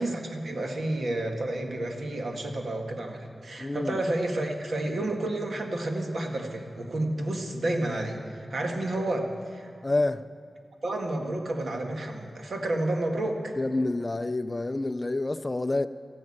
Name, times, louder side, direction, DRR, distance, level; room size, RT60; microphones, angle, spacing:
voice 1, 0.0-9.7 10.8-13.6, right 1 dB, 65° right, 1.8 m, -30 dB
voice 2, 3.6-4.0 9.8-10.2 13.6-15.9, left 2 dB, 25° left, 0.4 m, -28 dB
14.0 x 10.5 x 8.7 m
wide cardioid pair, 115°, 0 cm